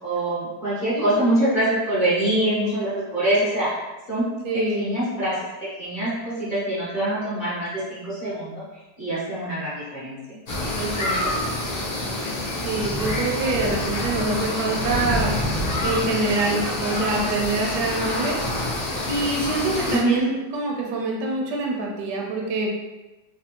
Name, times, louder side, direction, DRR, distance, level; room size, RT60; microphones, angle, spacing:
voice 1, 0.0-3.7 4.1-4.3 4.5-5.4 5.8-10.2 13.7-14.3 19.9-20.2, right 1 dB, 40° left, -11 dB, 0.7 m, -25 dB
voice 2, 4.4-4.8 10.8-11.4 12.6-15.4 15.8-18.4 19.1-22.7, right 3 dB, 75° right, 0 dB, 1.1 m, -25 dB
sound 1, 10.5-20.0, left 1 dB, 80° left, 0.3 m, -27 dB
3.3 x 2.1 x 2.9 m, 1.1 s
omnidirectional pair, 1.9 m